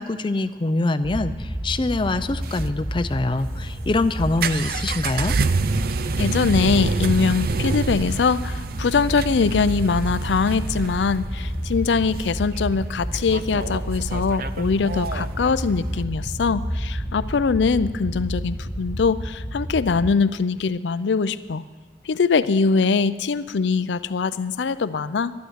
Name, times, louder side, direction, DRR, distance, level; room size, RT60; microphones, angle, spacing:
voice 1, 0.0-5.4, left 2 dB, 30° left, 10 dB, 0.5 m, -24 dB
sound 1, 1.0-20.1, equal, 10° right, 2.4 m, -31 dB
vehicle holdenssv ute ignition failed, 2.2-16.0, right 4 dB, 55° right, 0.5 m, -28 dB
voice 2, 6.2-21.6 22.1-25.3, left 5 dB, 85° left, 14 dB, 0.5 m, -22 dB
11.5 x 11.5 x 8.0 m, 1.4 s
head